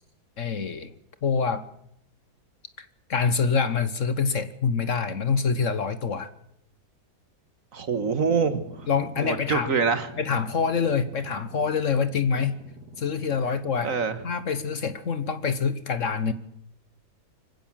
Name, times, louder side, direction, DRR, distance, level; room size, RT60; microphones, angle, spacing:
voice 1, 0.4-0.9 1.2-1.6 2.8-6.3 8.9-9.7 10.2-12.5 13.0-13.9 14.2-16.3, left 5 dB, 55° left, 13 dB, 1.4 m, -26 dB
voice 2, 7.7-8.6 9.2-10.1 13.8-14.2, right 5 dB, 55° right, 11 dB, 1.8 m, -25 dB
sound 1, 7.9-15.1, right 2 dB, 90° right, 3.7 m, -47 dB
25.0 x 16.0 x 7.5 m, 0.77 s
omnidirectional pair, 1.7 m